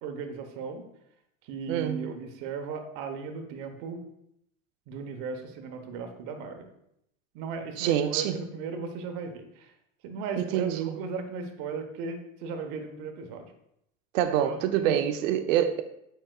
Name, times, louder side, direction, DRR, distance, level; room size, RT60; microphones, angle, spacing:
voice 1, 0.0-0.8 1.4-4.0 4.9-6.7 7.3-9.7 10.0-13.5 14.4-15.0, right 5 dB, 55° right, 1.1 m, -37 dB
voice 2, 1.7-2.1 7.8-8.4 10.4-11.0 14.1-15.8, right 10 dB, 70° right, 0.8 m, -26 dB
8.7 x 5.2 x 2.4 m
supercardioid pair, 115°, 40 cm